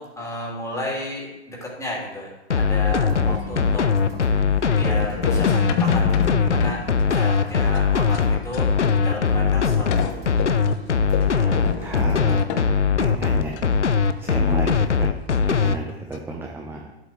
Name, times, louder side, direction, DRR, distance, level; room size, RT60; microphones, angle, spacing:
voice 1, 0.0-2.3 2.6-3.8 4.6-8.7 9.0-10.1, left 1 dB, 10° left, -4 dB, 3.3 m, -32 dB
sound 1, 2.5-15.8, left 6 dB, 90° left, 0.7 m, -20 dB
sound 2, 2.6-12.1, right 1 dB, 55° right, 3.5 m, -41 dB
sound 3, 3.1-9.3 9.5-9.6 9.9-13.6 14.2-14.3 14.5-14.6 15.3-15.6 15.9-16.2, left 6 dB, 35° left, 0.9 m, -31 dB
voice 2, 11.2-12.4 12.9-13.6 14.2-15.1 15.4-16.8, right 3 dB, 5° right, 2 dB, 0.7 m, -32 dB
12.5 x 8.0 x 3.2 m, 1.0 s
figure-of-eight pair, 100°, 34 cm